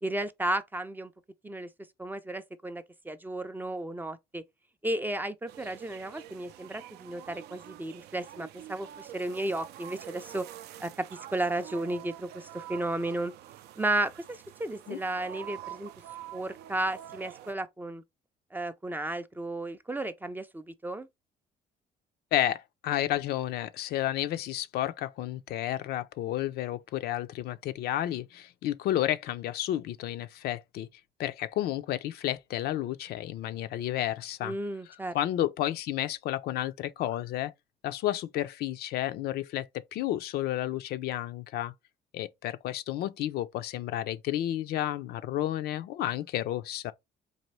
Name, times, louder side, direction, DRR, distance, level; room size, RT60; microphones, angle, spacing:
voice 1, 0.0-1.1 1.4-1.7 2.0-4.4 4.8-10.5 10.8-13.3 13.8-15.9 16.3-18.0 18.5-21.1 34.4-35.2, right 2 dB, 10° right, 0.4 m, -33 dB
sound 1, 5.5-17.5, right 12 dB, 75° right, 0.4 m, -47 dB
voice 2, 22.3-30.9 31.2-34.6 35.1-37.5 37.8-41.7 42.1-46.9, left 13 dB, 70° left, 0.4 m, -31 dB
4.1 x 2.6 x 3.0 m
cardioid pair, 110°, 17 cm